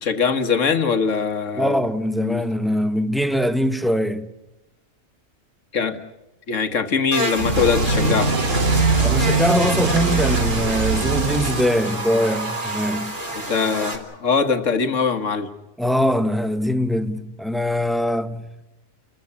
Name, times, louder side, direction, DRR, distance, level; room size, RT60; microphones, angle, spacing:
voice 1, 0.0-2.4 5.7-6.0 6.5-8.3 13.3-15.5, left 5 dB, 65° left, 1.7 m, -22 dB
voice 2, 1.6-4.3 9.0-13.2 15.8-18.5, equal, ahead, 0.5 m, -22 dB
Buzz, 7.1-13.9, right 1 dB, 35° right, 3.0 m, -29 dB
sound 1, 7.4-12.3, right 3 dB, 70° right, 2.3 m, -22 dB
29.5 x 14.0 x 9.7 m
omnidirectional pair, 1.4 m